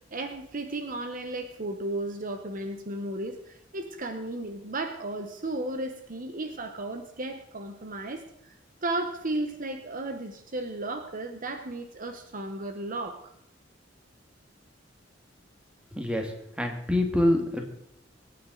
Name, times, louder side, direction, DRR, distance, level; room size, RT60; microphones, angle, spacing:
voice 1, 0.1-8.2 8.8-13.2, right 2 dB, 45° right, 6 dB, 1.0 m, -34 dB
voice 2, 15.9-16.3 16.6-17.6, left 1 dB, 5° right, 3 dB, 1.9 m, -25 dB
24.0 x 9.4 x 3.9 m, 0.77 s
head